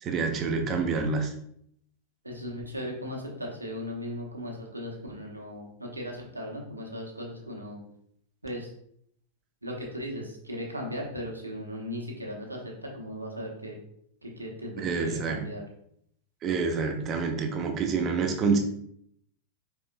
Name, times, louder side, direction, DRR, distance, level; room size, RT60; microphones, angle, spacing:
voice 1, 0.0-1.3 14.8-15.4 16.4-18.6, right 4 dB, 30° right, 4 dB, 0.6 m, -27 dB
voice 2, 2.2-7.8 8.4-8.7 9.6-13.8 14.2-15.6, equal, 85° right, 0 dB, 0.9 m, -37 dB
4.6 x 3.5 x 2.5 m, 0.69 s
figure-of-eight pair, 90°, 0 cm